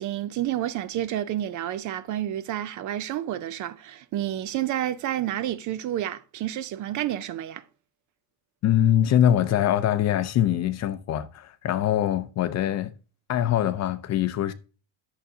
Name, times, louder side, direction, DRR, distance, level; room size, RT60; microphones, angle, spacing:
voice 1, 0.0-7.6, right 12 dB, 45° right, 0.4 m, -30 dB
voice 2, 8.6-12.9 13.3-14.5, left 11 dB, 40° left, 0.5 m, -23 dB
11.0 x 6.8 x 2.7 m
cardioid pair, 170°, 44 cm